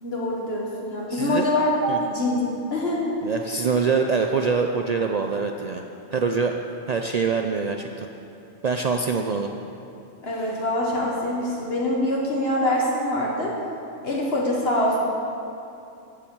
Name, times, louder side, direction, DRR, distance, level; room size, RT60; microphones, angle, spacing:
voice 1, 0.0-2.4 2.7-3.1 10.2-13.5 14.0-15.0, left 1 dB, 55° left, -4 dB, 1.5 m, -24 dB
voice 2, 1.1-1.5 1.9-2.0 3.2-5.8 6.1-6.5 6.9-8.1 8.6-9.5, right 5 dB, 70° right, 4 dB, 0.3 m, -24 dB
15.0 x 7.4 x 4.6 m, 2.7 s
omnidirectional pair, 1.3 m